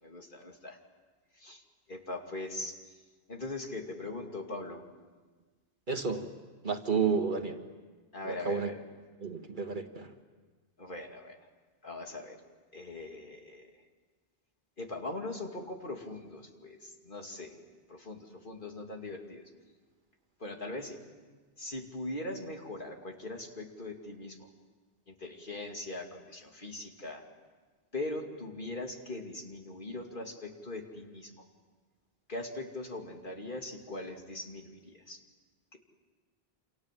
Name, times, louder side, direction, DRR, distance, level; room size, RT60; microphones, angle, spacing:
voice 1, 0.0-0.8 1.3-1.6 1.9-2.8 3.3-4.8 8.1-8.8 10.8-11.4 11.8-12.4 12.7-13.7 14.8-17.6 17.9-19.5 20.4-21.0 21.6-24.5 25.1-27.2 27.9-31.4 32.3-35.2 35.7-35.8, left 2 dB, 55° left, 2 dB, 2.8 m, -41 dB
voice 2, 5.9-6.3 6.6-7.6 8.2-8.7 9.2-10.1, right 5 dB, 50° right, 5 dB, 1.8 m, -31 dB
29.0 x 27.0 x 7.6 m, 1.4 s
omnidirectional pair, 1.0 m